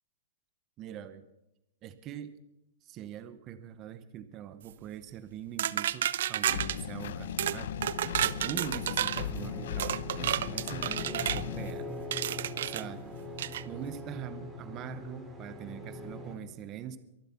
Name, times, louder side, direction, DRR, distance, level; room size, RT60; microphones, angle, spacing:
voice 1, 0.8-1.3 1.8-2.4 2.8-7.8 8.2-13.1 13.6-17.0, right 10 dB, 25° right, 12 dB, 0.8 m, -43 dB
sound 1, 5.6-6.8 7.4-7.6 7.8-9.2 9.8-11.4 12.1-12.8 13.4-13.6, right 11 dB, 65° right, 0.5 m, -31 dB
Engine, 6.5-11.7, left 9 dB, 65° left, 0.8 m, -38 dB
sound 2, 7.9-16.4, left 2 dB, 10° right, 2.5 m, -43 dB
23.5 x 7.8 x 5.6 m, 0.86 s
hypercardioid pair, 160°, 0 cm